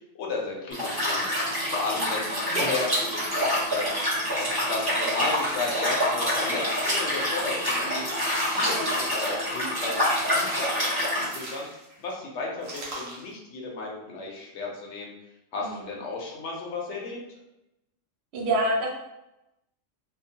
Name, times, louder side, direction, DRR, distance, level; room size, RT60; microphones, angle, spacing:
voice 1, 0.1-1.3 1.7-3.8 4.4-8.1 8.5-15.1 15.5-17.2, left 3 dB, 70° left, -2 dB, 0.9 m, -34 dB
Liquid, 0.7-11.3, equal, 20° right, 0.9 m, -27 dB
sound 1, 5.1-6.0 6.4-7.7 8.1-9.6 10.0-10.7 11.1-12.0 12.6-13.3, right 2 dB, 80° right, 1.1 m, -41 dB
voice 2, 8.6-9.0 15.6-15.7 18.3-18.9, right 1 dB, 65° right, -1 dB, 0.8 m, -27 dB
2.8 x 2.0 x 2.7 m, 0.90 s
omnidirectional pair, 1.3 m